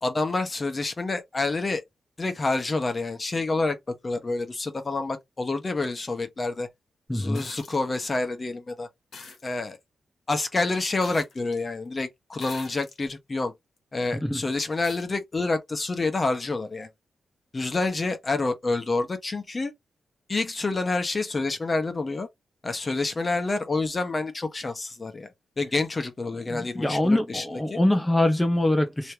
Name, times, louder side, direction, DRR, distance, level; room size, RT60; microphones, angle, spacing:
voice 1, 0.0-1.8 2.2-3.8 4.0-6.7 7.1-8.9 9.4-9.8 10.3-13.5 13.9-16.9 17.5-19.7 20.3-22.3 22.6-25.3 25.6-27.8, left 3 dB, 35° left, 1.1 m, -28 dB
voice 2, 7.1-7.4 14.2-14.4 26.5-29.1, left 1 dB, 10° left, 0.8 m, -24 dB
sound 1, 7.3-7.8 9.1-9.4 11.0-11.6 12.4-13.1 13.8-13.9 14.8-15.0 16.5-16.6, left 4 dB, 65° left, 1.3 m, -44 dB
3.3 x 3.0 x 2.8 m
cardioid pair, 80°, 0 cm